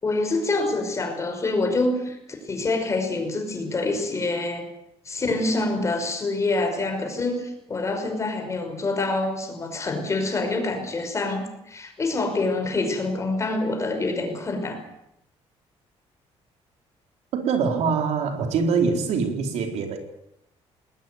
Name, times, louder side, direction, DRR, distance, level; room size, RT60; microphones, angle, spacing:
voice 1, 0.0-4.7 5.1-14.8, left 2 dB, 25° left, 5 dB, 5.7 m, -26 dB
voice 2, 17.3-20.0, right 5 dB, 75° right, 5 dB, 4.1 m, -24 dB
20.5 x 20.0 x 9.4 m, 0.81 s
cardioid pair, 140°, 11 cm